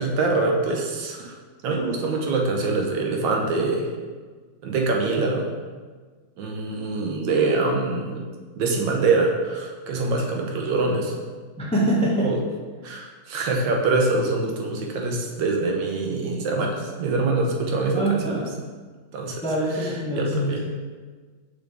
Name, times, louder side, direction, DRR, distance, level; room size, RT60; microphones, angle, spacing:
voice 1, 0.0-1.3 1.6-3.9 4.6-5.5 6.4-8.3 8.6-11.1 12.2-12.4 12.8-18.4 19.1-19.4 19.8-19.9 20.2-20.6, right 3 dB, 75° right, 1 dB, 1.5 m, -24 dB
voice 2, 11.6-12.3 17.9-18.5 19.4-20.6, right 1 dB, 10° left, -4 dB, 0.4 m, -24 dB
6.8 x 4.0 x 3.4 m, 1.5 s
omnidirectional pair, 2.1 m